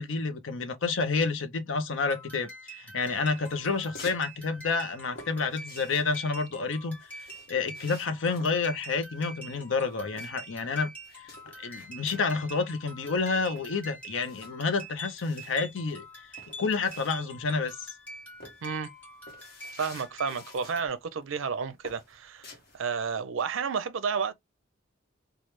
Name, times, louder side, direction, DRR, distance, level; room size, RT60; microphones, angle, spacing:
voice 1, 0.0-10.9 11.2-11.3 11.6-16.0 16.6-17.7, left 4 dB, 65° left, 0.6 m, -29 dB
sound 1, 2.0-20.9, right 1 dB, 10° left, 1.3 m, -46 dB
sound 2, 3.1-4.3 4.5-10.6 11.0-12.3 12.7-12.8 13.0-17.5 17.8-18.1 18.4-20.9 21.2-21.5 21.8-22.8, left 2 dB, 50° left, 1.2 m, -50 dB
voice 2, 19.8-24.3, right 6 dB, 70° right, 0.5 m, -31 dB
3.2 x 2.3 x 3.0 m
head